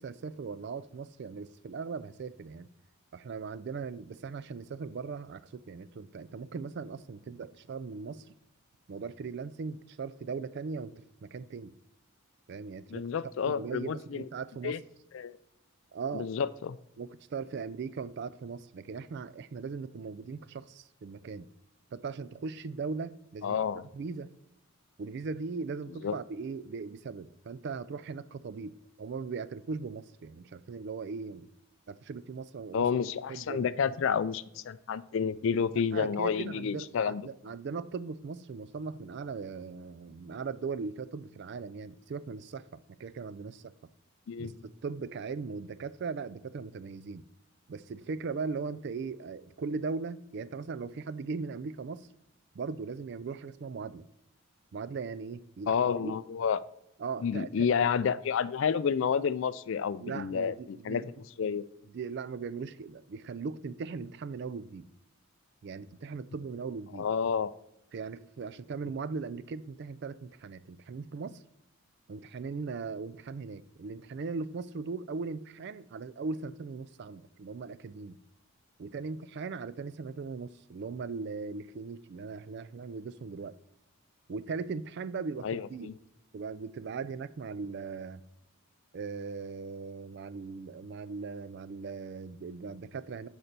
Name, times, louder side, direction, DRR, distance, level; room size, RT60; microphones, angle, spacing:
voice 1, 0.0-2.7 3.1-8.3 8.9-11.8 12.5-13.1 13.5-14.8 15.9-16.3 17.0-21.5 21.9-23.6 23.9-24.3 25.0-31.5 31.9-32.9 33.3-33.7 35.7-43.7 44.4-47.3 47.7-52.1 52.5-54.1 54.7-56.1 57.0-57.7 60.0-61.1 61.4-61.6 61.9-64.9 65.6-67.1 67.9-71.4 72.1-78.2 78.8-83.5 84.3-85.9 86.3-88.2 88.9-93.3, right 4 dB, 50° right, 0.3 m, -39 dB
voice 2, 12.9-14.2 14.6-14.8 15.1-15.4 16.1-16.8 23.4-23.8 26.0-26.2 32.7-37.2 44.3-44.6 55.7-56.6 57.2-61.0 61.4-61.6 67.0-67.5 85.4-85.9, left 6 dB, 60° left, 0.3 m, -30 dB
6.6 x 4.4 x 6.6 m
head